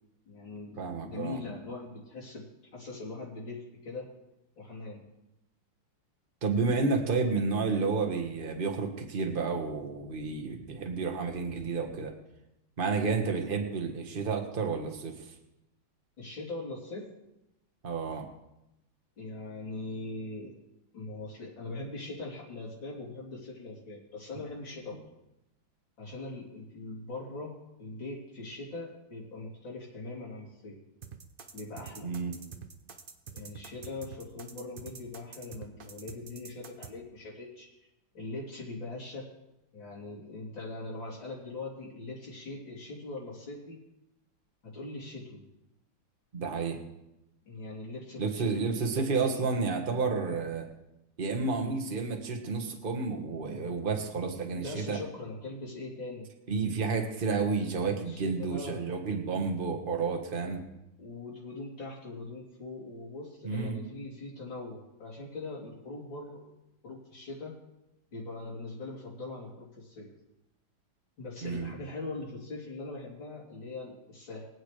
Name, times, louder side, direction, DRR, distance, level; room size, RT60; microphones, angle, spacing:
voice 1, 0.3-4.1 4.6-5.0 16.2-17.1 19.2-20.5 20.9-25.0 26.0-30.8 31.5-32.1 33.3-37.7 38.1-39.3 39.7-43.8 44.6-45.4 47.5-49.6 54.6-56.3 58.0-59.0 61.0-66.4 66.8-67.5 68.1-70.1 71.2-74.5, left 2 dB, 75° left, -6 dB, 3.9 m, -41 dB
voice 2, 0.8-1.4 6.4-12.1 12.8-15.1 17.8-18.3 32.0-32.3 46.3-46.8 48.2-50.7 51.2-55.0 56.5-60.6 63.4-63.8 71.4-71.7, right 4 dB, 30° right, 2 dB, 1.5 m, -31 dB
sound 1, 31.0-36.9, right 6 dB, 50° right, 0.6 m, -46 dB
23.5 x 9.0 x 3.3 m, 0.90 s
omnidirectional pair, 2.1 m